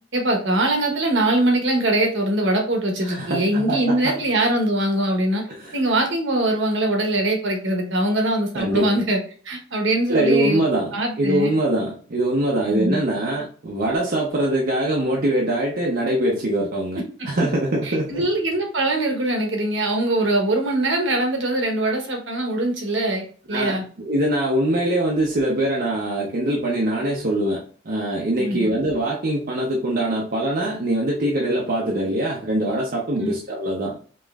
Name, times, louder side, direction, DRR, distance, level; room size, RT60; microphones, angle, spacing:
voice 1, 0.1-5.4 5.7-9.2 9.4-10.6 10.9-11.5 12.7-13.0 17.0-17.1 17.8-23.8 28.4-28.7 33.1-33.3, right 1 dB, 60° right, 2 dB, 1.0 m, -22 dB
voice 2, 3.0-4.2 5.5-5.7 8.5-9.0 10.1-17.0 17.3-18.3 23.5-34.0, right 1 dB, 45° right, -2 dB, 0.6 m, -23 dB
5.2 x 2.9 x 2.4 m, 0.42 s
head